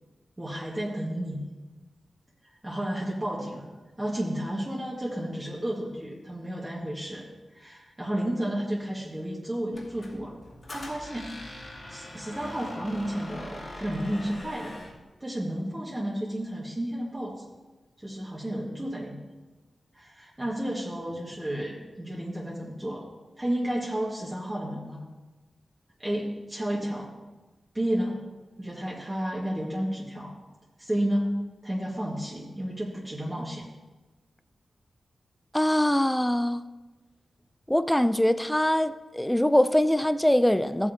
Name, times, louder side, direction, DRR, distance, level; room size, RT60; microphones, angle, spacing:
voice 1, 0.4-1.4 2.4-3.7 4.0-7.2 7.5-10.3 10.7-14.8 15.2-17.4 18.0-19.3 19.9-23.1 23.4-25.0 26.0-27.1 27.7-28.2 28.6-30.3 30.8-31.3 31.6-33.7, right 1 dB, 20° right, -5 dB, 1.9 m, -32 dB
Squeak, 9.7-15.0, left 1 dB, 45° left, 2.4 m, -42 dB
voice 2, 35.5-36.7 37.7-40.9, left 1 dB, 5° left, 12 dB, 0.4 m, -23 dB
14.5 x 8.5 x 2.9 m, 1.2 s
cardioid pair, 70°, 0 cm